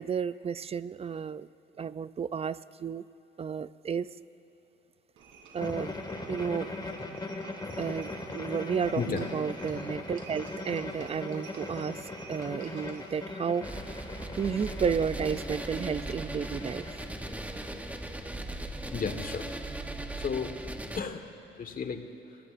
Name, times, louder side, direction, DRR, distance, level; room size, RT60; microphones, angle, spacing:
voice 1, 0.0-1.5 1.8-3.0 3.4-4.1 5.5-5.9 6.3-6.7 7.8-12.0 12.3-13.7 14.4-16.8, right 6 dB, 30° right, 16 dB, 0.4 m, -32 dB
Livestock farm animals working animals, 5.2-13.3, right 4 dB, 90° right, 3.3 m, -52 dB
sound 1, 5.6-18.3, left 2 dB, 20° left, 2.0 m, -40 dB
voice 2, 8.9-9.3 18.9-19.5 20.1-20.6 20.9-21.3 21.6-22.4, left 5 dB, 45° left, 6 dB, 1.5 m, -34 dB
sound 2, 13.6-21.0, right 1 dB, 5° right, 1.0 m, -38 dB
28.5 x 19.0 x 2.6 m, 2.8 s
cardioid pair, 90°, 20 cm